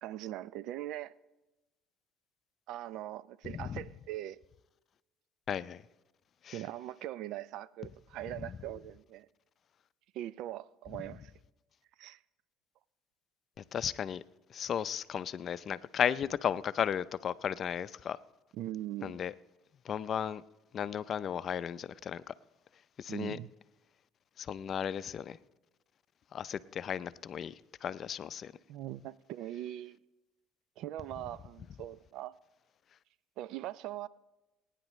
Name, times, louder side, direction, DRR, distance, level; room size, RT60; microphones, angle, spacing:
voice 1, 0.0-1.1 2.7-4.4 6.5-9.3 10.1-11.3 12.0-12.2 18.5-19.2 23.1-23.5 28.7-30.0 30.8-32.4 33.4-34.1, right 13 dB, 70° right, 0.4 m, -41 dB
voice 2, 5.5-5.8 6.4-6.6 13.7-14.2 14.5-18.2 19.0-19.3 19.9-20.4 20.7-22.3 23.0-23.4 24.4-25.4 26.3-27.5 27.8-28.5, left 8 dB, 50° left, 0.5 m, -34 dB
22.5 x 9.9 x 3.1 m
supercardioid pair, 90°, 0 cm